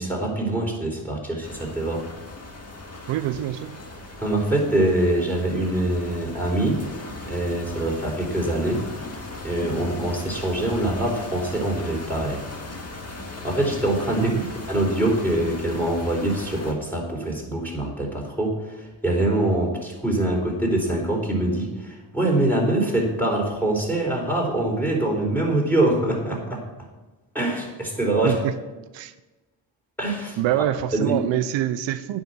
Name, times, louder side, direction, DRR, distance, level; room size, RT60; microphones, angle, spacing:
voice 1, 0.0-2.0 4.2-7.0 7.2-8.9 9.4-12.4 13.4-14.4 14.7-26.6 27.3-28.4 30.0-30.4 30.9-31.2, right 1 dB, 5° left, -2 dB, 4.3 m, -24 dB
sound 1, 1.4-16.7, left 2 dB, 35° left, 1.9 m, -38 dB
voice 2, 3.1-3.8 14.2-14.5 28.2-28.5 28.9-29.1 30.4-32.2, right 12 dB, 85° right, 13 dB, 0.6 m, -25 dB
9.4 x 5.7 x 8.1 m, 1.1 s
supercardioid pair, 60°, 44 cm